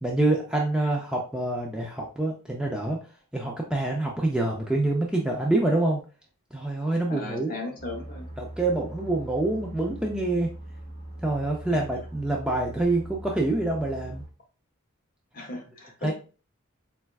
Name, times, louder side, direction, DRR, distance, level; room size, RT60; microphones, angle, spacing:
voice 1, 0.0-3.0 3.3-6.0 6.5-7.6 8.4-10.5 11.2-14.2 16.0-16.1, right 2 dB, 5° right, -1 dB, 0.3 m, -26 dB
voice 2, 7.1-8.3 11.6-11.8 15.3-16.1, left 2 dB, 40° left, 1 dB, 0.8 m, -37 dB
sound 1, 7.8-14.3, right 1 dB, 20° left, 1.7 m, -41 dB
4.2 x 2.2 x 2.3 m, 0.36 s
head